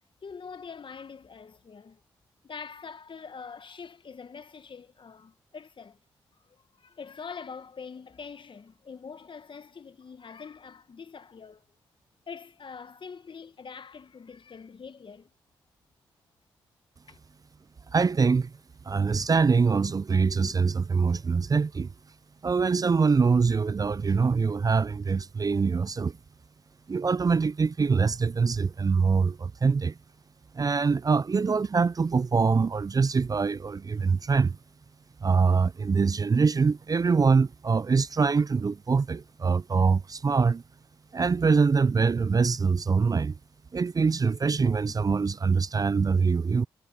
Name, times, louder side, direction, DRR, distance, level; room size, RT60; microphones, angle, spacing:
voice 1, 0.2-2.0 2.4-6.0 6.8-11.6 12.3-15.3 17.1-17.2, left 5 dB, 50° left, 1.5 m, -44 dB
voice 2, 17.9-18.5 18.9-21.9 22.4-26.2 26.9-29.9 30.5-34.6 35.2-40.6 41.1-43.4 43.7-46.7, right 5 dB, 35° right, 0.5 m, -24 dB
hypercardioid pair, 40°, 11 cm